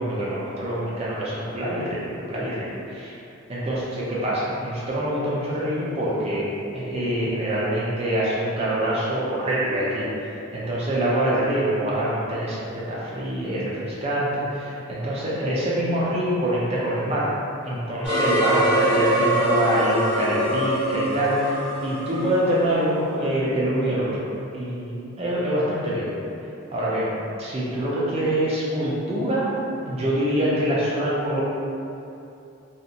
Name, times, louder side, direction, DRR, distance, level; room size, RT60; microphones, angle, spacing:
voice 1, 0.0-3.1 3.5-10.1 10.5-17.3 17.6-24.2 24.5-26.1 26.7-27.1 27.4-29.6 29.8-31.4, right 1 dB, 30° right, -7 dB, 0.5 m, -25 dB
sound 1, 18.0-23.0, right 1 dB, 10° left, 0.8 m, -24 dB
2.7 x 2.0 x 2.5 m, 2.7 s
head